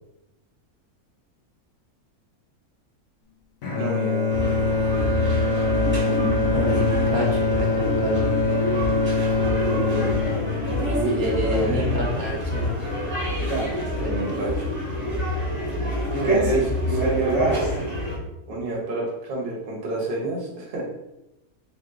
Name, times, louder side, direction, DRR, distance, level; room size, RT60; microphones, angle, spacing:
Bowed string instrument, 3.6-11.8, left 3 dB, 70° left, 1.0 m, -24 dB
voice 1, 3.7-4.6 9.5-10.0 10.8-12.0 14.0-14.7 16.1-17.5 18.5-20.8, right 2 dB, 40° right, -3 dB, 1.1 m, -28 dB
sound 1, 4.3-18.2, equal, 10° right, 1.0 m, -26 dB
voice 2, 6.5-8.4 11.0-12.8 14.0-14.4, left 2 dB, 75° right, -2 dB, 1.3 m, -28 dB
3.1 x 2.9 x 3.7 m, 0.91 s
omnidirectional pair, 1.6 m